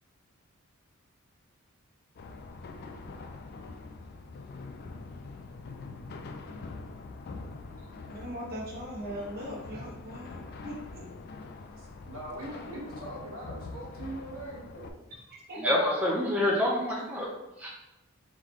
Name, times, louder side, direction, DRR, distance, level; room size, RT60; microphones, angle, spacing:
sound 1, 2.2-14.9, left 3 dB, 45° left, 0.4 m, -44 dB
voice 1, 7.8-11.0 15.3-15.9, left 1 dB, 45° right, -3 dB, 1.1 m, -38 dB
voice 2, 11.8-15.0, right 1 dB, 70° right, -4 dB, 1.4 m, -41 dB
voice 3, 15.6-17.3 17.6-17.7, left 1 dB, 5° right, -3 dB, 0.5 m, -27 dB
3.7 x 3.5 x 3.0 m, 0.96 s
head